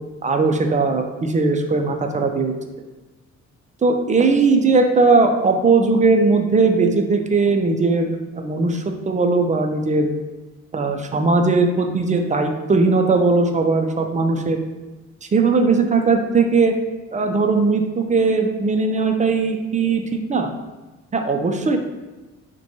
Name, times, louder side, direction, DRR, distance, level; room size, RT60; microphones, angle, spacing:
voice 1, 0.2-2.5 3.8-10.1 10.7-14.6 15.3-16.8 17.1-20.0 20.3-20.5 21.1-21.8, right 3 dB, 25° right, 4 dB, 0.4 m, -18 dB
5.7 x 2.2 x 2.8 m, 1.2 s
cardioid pair, 90°, 30 cm